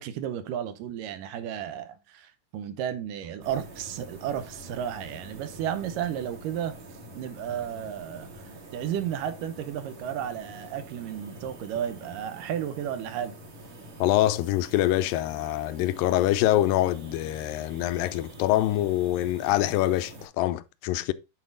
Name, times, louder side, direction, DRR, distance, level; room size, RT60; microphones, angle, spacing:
voice 1, 0.0-6.7 7.2-8.3 8.7-13.3, right 9 dB, 75° right, 2.4 m, -33 dB
sound 1, 3.4-20.3, right 1 dB, 60° right, 4.0 m, -46 dB
voice 2, 14.0-21.1, left 14 dB, 85° left, 2.3 m, -25 dB
9.3 x 4.7 x 3.8 m
omnidirectional pair, 3.9 m